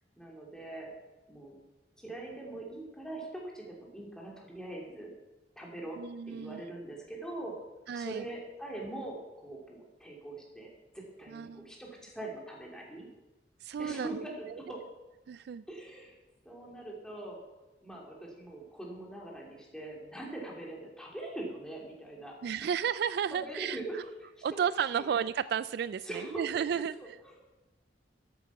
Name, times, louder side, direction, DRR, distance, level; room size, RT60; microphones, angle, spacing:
voice 1, 0.2-0.9 1.3-1.6 2.0-5.1 5.6-6.0 6.3-7.6 7.9-13.1 13.7-14.8 15.7-16.2 16.4-17.4 17.8-22.7 23.3-24.6 24.9-25.1 26.0-26.5 27.0-27.4, right 2 dB, 5° left, -2 dB, 2.9 m, -42 dB
voice 2, 6.0-6.6 7.9-8.2 11.3-11.7 13.6-14.2 15.3-15.6 22.4-23.8 24.4-26.9, right 8 dB, 60° right, 16 dB, 0.3 m, -32 dB
13.0 x 8.6 x 5.9 m, 1.1 s
head